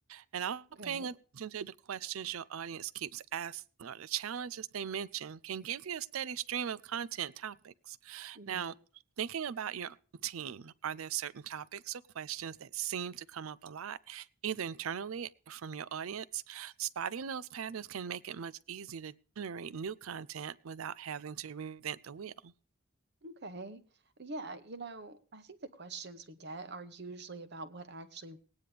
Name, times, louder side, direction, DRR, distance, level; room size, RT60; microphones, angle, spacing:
voice 1, 0.1-8.7 9.2-10.0 10.2-22.5, right 8 dB, 80° right, 0.5 m, -39 dB
voice 2, 0.8-1.1 8.3-8.7 23.2-23.8 24.2-28.4, right 3 dB, 55° right, 1.1 m, -45 dB
19.5 x 9.5 x 3.3 m
head